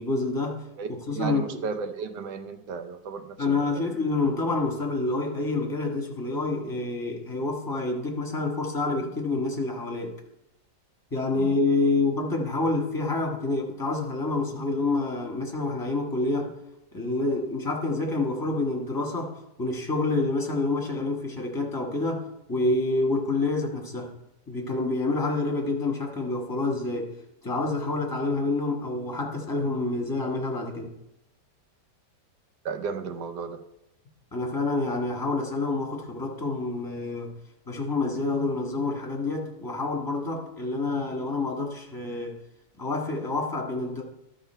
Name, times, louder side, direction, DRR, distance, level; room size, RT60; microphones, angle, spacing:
voice 1, 0.0-0.6 1.1-1.6 3.4-10.2 11.1-16.5 16.9-24.1 24.5-27.1 27.4-30.9 34.3-37.3 37.7-42.3 42.8-44.0, left 3 dB, 15° left, 0 dB, 1.4 m, -28 dB
voice 2, 0.8-3.8 11.3-11.5 32.6-33.6, right 6 dB, 80° right, 8 dB, 1.4 m, -34 dB
12.5 x 5.6 x 4.5 m, 0.87 s
omnidirectional pair, 1.8 m